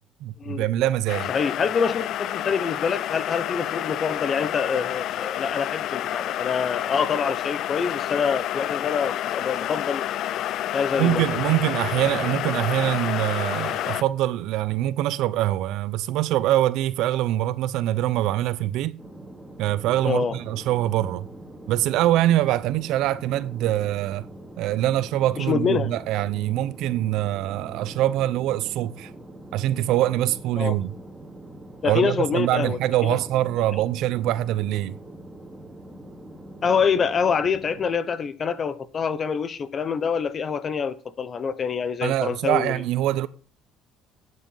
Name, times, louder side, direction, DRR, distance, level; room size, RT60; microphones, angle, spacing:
voice 1, 0.2-1.3 11.0-19.0 19.6-21.3 21.7-24.3 24.6-29.1 29.5-30.9 31.8-35.0 42.0-43.3, right 14 dB, 75° right, 0.7 m, -24 dB
sound 1, 1.1-14.0, left 12 dB, 65° left, 0.4 m, -29 dB
voice 2, 1.3-10.0 10.7-11.2 20.0-20.4 25.4-26.0 30.6-30.8 31.8-33.2 36.6-42.8, left 6 dB, 40° left, 1.0 m, -26 dB
sound 2, 11.0-15.4, left 4 dB, 85° left, 3.3 m, -42 dB
sound 3, 19.0-37.9, right 1 dB, 10° right, 2.6 m, -43 dB
11.0 x 7.7 x 5.6 m
cardioid pair, 105°, 0 cm